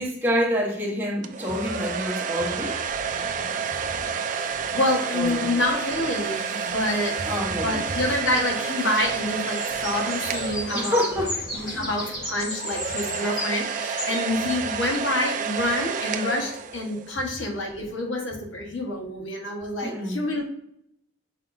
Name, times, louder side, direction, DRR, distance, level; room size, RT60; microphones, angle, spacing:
voice 1, 0.0-2.8 5.1-5.5 7.2-7.9 10.7-11.9 19.8-20.3, equal, 10° right, -4 dB, 1.0 m, -27 dB
sound 1, 1.2-11.4 12.4-17.1, right 6 dB, 40° right, 0.3 m, -30 dB
sound 2, 2.9-12.5, left 1 dB, 55° left, 1.0 m, -43 dB
voice 2, 4.4-7.2 7.5-11.3 11.5-20.4, left 1 dB, 75° left, 0 dB, 1.2 m, -27 dB
sound 3, 7.6-15.5 16.1-16.2, left 1 dB, 20° left, 1.4 m, -36 dB
5.7 x 3.6 x 2.6 m, 0.73 s
head